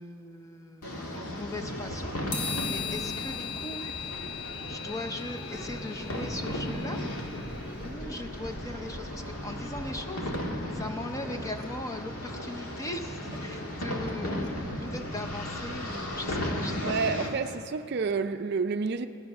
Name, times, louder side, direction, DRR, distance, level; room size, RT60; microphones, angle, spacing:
voice 1, 0.0-3.8 4.7-7.0 7.8-10.3 10.7-17.3, left 2 dB, 15° left, 0.6 m, -39 dB
sound 1, 0.8-17.3, left 1 dB, 85° left, 1.8 m, -36 dB
sound 2, 1.6-17.2, equal, 10° right, 1.8 m, -44 dB
sound 3, 2.3-7.6, left 7 dB, 40° left, 1.9 m, -38 dB
voice 2, 16.8-19.1, right 5 dB, 50° right, 0.4 m, -29 dB
17.5 x 11.0 x 6.0 m
head